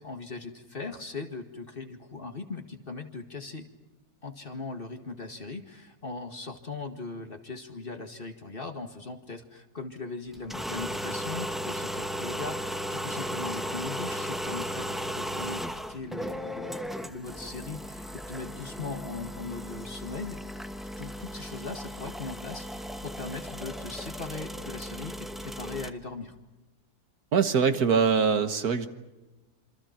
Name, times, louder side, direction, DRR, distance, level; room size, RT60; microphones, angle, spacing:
voice 1, 0.0-3.7 4.2-20.4 21.0-26.3, left 3 dB, 35° left, 6 dB, 2.1 m, -39 dB
sound 1, 10.3-25.9, equal, ahead, 0.9 m, -36 dB
voice 2, 27.3-28.9, right 6 dB, 65° right, 9 dB, 1.9 m, -23 dB
27.0 x 26.0 x 5.9 m, 1.1 s
omnidirectional pair, 1.7 m